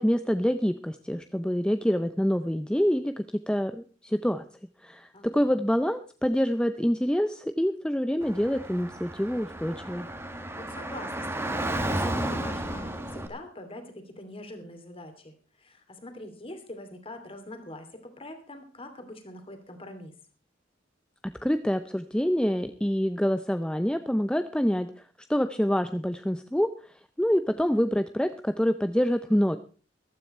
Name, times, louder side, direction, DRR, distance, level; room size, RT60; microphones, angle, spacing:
voice 1, 0.0-4.4 4.8-10.1 21.4-24.9 25.3-26.7 27.2-29.6, equal, 5° left, 9 dB, 0.5 m, -26 dB
voice 2, 5.1-5.6 10.5-20.1, left 1 dB, 30° left, 7 dB, 2.8 m, -44 dB
Car / Traffic noise roadway noise, 8.2-13.3, right 1 dB, 15° right, 1.6 m, -33 dB
14.5 x 13.0 x 4.3 m, 0.38 s
head